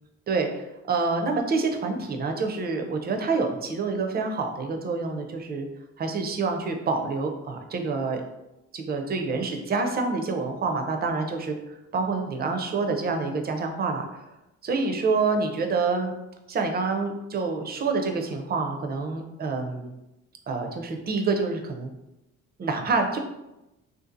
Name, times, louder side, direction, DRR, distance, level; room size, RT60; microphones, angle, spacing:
voice 1, 0.3-5.7 6.0-8.2 8.7-11.6 11.9-14.1 14.6-16.1 16.5-19.9 20.5-21.9 22.6-23.2, right 4 dB, 35° right, 4 dB, 0.4 m, -27 dB
2.6 x 2.4 x 2.4 m, 0.95 s
cardioid pair, 90°, 30 cm